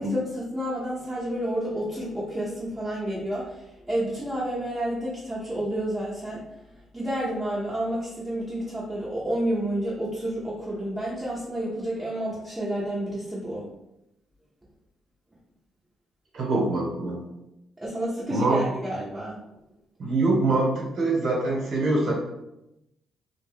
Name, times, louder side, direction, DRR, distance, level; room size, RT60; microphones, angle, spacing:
voice 1, 0.0-6.4 6.9-13.7 17.8-19.4, right 1 dB, 15° right, -7 dB, 0.7 m, -30 dB
voice 2, 16.3-17.2 18.3-18.6 20.0-22.1, right 2 dB, 65° right, -2 dB, 1.0 m, -24 dB
2.3 x 2.2 x 3.4 m, 0.87 s
cardioid pair, 90°, 0 cm